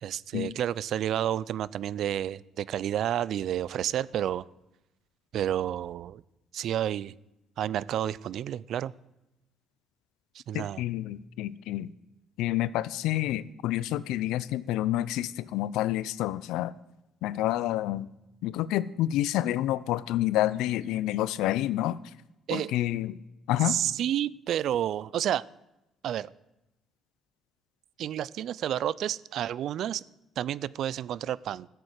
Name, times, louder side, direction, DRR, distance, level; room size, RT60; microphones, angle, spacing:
voice 1, 0.0-4.4 5.3-6.2 6.5-7.1 7.6-8.9 10.3-10.8 22.5-22.7 23.6-25.4 26.0-26.3 28.0-30.0 30.4-31.7, right 11 dB, 65° right, 21 dB, 0.4 m, -30 dB
voice 2, 10.5-11.9 12.4-16.7 17.2-18.1 18.4-22.0 22.5-23.2 23.5-23.8, left 14 dB, 85° left, 18 dB, 0.5 m, -28 dB
13.0 x 7.7 x 8.1 m, 0.94 s
cardioid pair, 115°, 0 cm